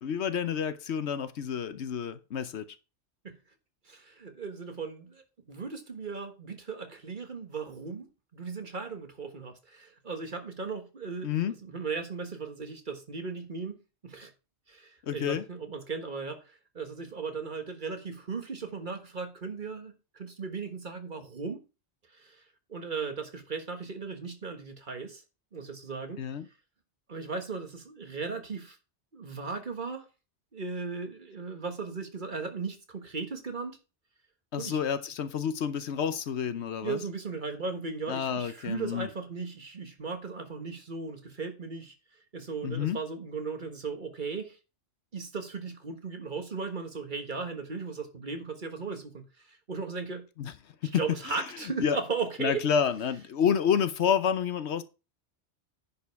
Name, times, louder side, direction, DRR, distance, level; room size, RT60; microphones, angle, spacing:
voice 1, 0.0-2.6 11.2-11.5 15.0-15.4 26.2-26.5 34.5-37.0 38.1-39.1 42.6-43.0 50.4-50.5 50.8-50.9 51.3-51.4 51.8-52.0 52.4-54.8, left 7 dB, 70° left, 1.0 m, -29 dB
voice 2, 3.9-11.3 11.6-14.3 14.7-21.6 22.1-22.4 22.7-25.2 25.5-26.2 27.1-28.8 29.1-30.1 30.5-33.8 34.6-34.8 36.8-41.9 42.3-44.6 45.1-50.2 50.8-52.7, right 4 dB, 45° right, 1.5 m, -37 dB
10.0 x 5.3 x 4.7 m
omnidirectional pair, 1.2 m